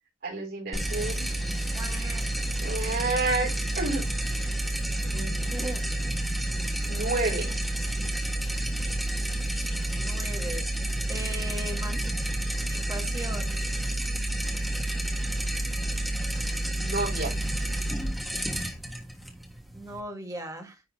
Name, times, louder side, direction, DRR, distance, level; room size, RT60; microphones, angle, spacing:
voice 1, 0.2-1.3 2.6-4.1 5.0-5.5 6.8-7.6 16.7-17.3, right 3 dB, 50° right, 3.9 m, -30 dB
sound 1, 0.7-20.0, right 1 dB, ahead, 1.4 m, -30 dB
voice 2, 1.7-2.5 5.4-5.8 9.9-10.7 11.1-12.1 12.7-13.6 19.7-20.8, right 1 dB, 15° right, 1.7 m, -38 dB
10.0 x 4.0 x 3.0 m
head